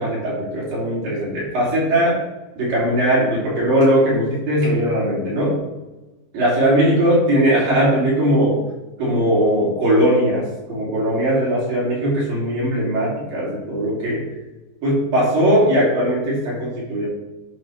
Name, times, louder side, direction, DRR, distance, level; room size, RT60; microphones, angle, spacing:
voice 1, 0.0-2.2 2.6-5.6 6.3-8.6 9.0-14.3 14.8-17.1, right 1 dB, 60° right, -7 dB, 5.0 m, -19 dB
11.5 x 4.2 x 5.9 m, 1.1 s
omnidirectional pair, 4.6 m